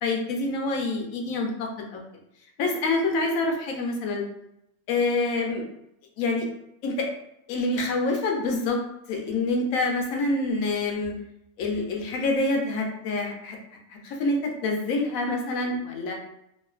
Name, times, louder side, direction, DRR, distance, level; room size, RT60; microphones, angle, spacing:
voice 1, 0.0-2.0 2.6-4.2 4.9-5.6 6.2-6.5 6.8-7.1 7.5-8.8 9.1-11.1 11.6-13.6 13.9-16.1, left 2 dB, 70° left, 1 dB, 0.9 m, -26 dB
2.9 x 2.0 x 2.3 m, 0.79 s
omnidirectional pair, 1.7 m